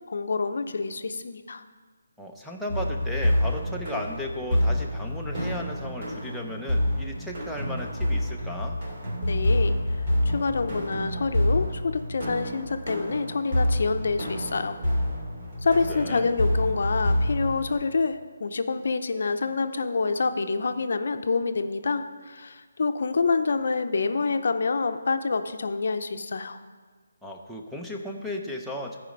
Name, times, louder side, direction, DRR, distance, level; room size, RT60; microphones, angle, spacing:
voice 1, 0.1-1.6 9.2-9.8 10.2-14.8 15.6-26.6, left 4 dB, 60° left, 9 dB, 0.6 m, -27 dB
voice 2, 2.2-8.8 15.9-16.3 27.2-29.0, left 1 dB, ahead, -1 dB, 0.6 m, -35 dB
sound 1, 2.7-17.7, left 1 dB, 40° right, 3.0 m, -27 dB
13.5 x 5.0 x 5.3 m, 1.5 s
hypercardioid pair, 165°, 0 cm